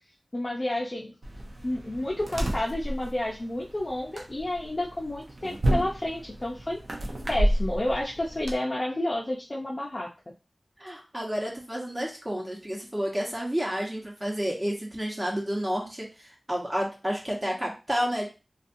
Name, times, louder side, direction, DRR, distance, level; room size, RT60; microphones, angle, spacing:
voice 1, 0.3-1.1 1.6-6.8 7.3-10.1, left 1 dB, 45° left, -3 dB, 0.5 m, -30 dB
sound 1, 1.2-8.5, right 1 dB, 75° right, 0.5 m, -31 dB
voice 2, 10.8-18.2, equal, 25° right, -1 dB, 1.0 m, -30 dB
2.5 x 2.3 x 2.6 m, 0.30 s
wide cardioid pair, 50°, 0 cm